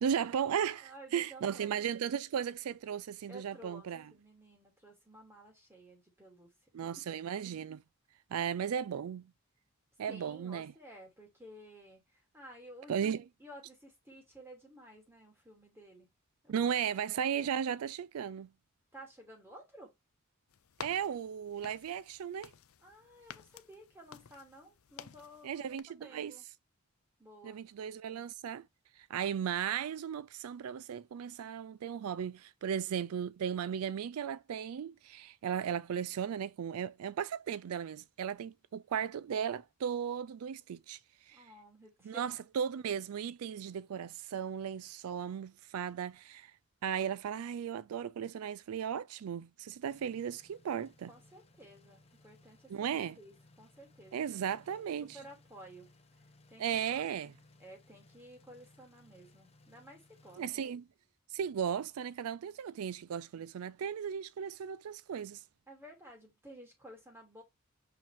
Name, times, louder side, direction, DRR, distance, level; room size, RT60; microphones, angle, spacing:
voice 1, 0.0-4.1 6.7-7.8 8.3-9.3 10.0-10.7 12.9-13.2 16.5-18.5 20.8-22.5 25.4-26.3 27.4-28.6 29.1-41.0 41.3-41.5 42.1-46.5 46.8-51.1 52.7-53.2 54.1-55.2 56.6-57.3 60.4-60.8 61.3-65.4, right 8 dB, 80° right, 0.4 m, -36 dB
voice 2, 0.8-1.8 3.3-6.5 10.1-16.1 16.4-16.8 18.9-19.9 22.8-26.4 27.2-27.6 41.3-42.4 51.1-52.7 53.0-54.6 55.0-55.9 56.5-57.0 57.6-60.7 65.7-67.4, right 1 dB, 10° right, 2.7 m, -54 dB
sound 1, 20.5-25.8, left 8 dB, 75° left, 0.6 m, -52 dB
sound 2, 49.8-60.4, left 2 dB, 30° left, 1.0 m, -63 dB
5.9 x 4.9 x 3.5 m
head